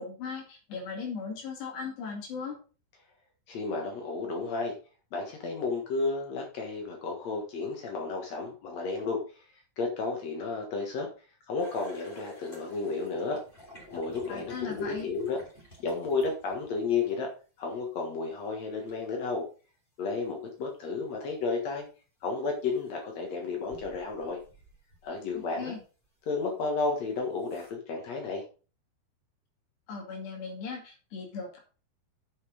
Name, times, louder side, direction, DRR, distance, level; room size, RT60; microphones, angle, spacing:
voice 1, 0.0-2.6 14.3-15.1 25.3-25.8 29.9-31.6, left 5 dB, 60° left, 0 dB, 4.4 m, -38 dB
voice 2, 3.5-4.7 5.1-9.4 9.8-11.1 11.5-13.4 13.9-15.4 15.8-17.3 17.6-19.4 20.0-21.9 22.2-24.4 25.0-25.8 26.2-28.4, left 4 dB, 85° left, 1 dB, 1.5 m, -32 dB
sound 1, 11.6-16.9 18.9-19.0 21.8-21.9 22.7-23.0 23.6-25.3 25.8-25.9 26.8-26.9 27.4-27.7, left 1 dB, 15° left, 2.5 m, -49 dB
8.3 x 6.9 x 5.1 m, 0.36 s
omnidirectional pair, 5.6 m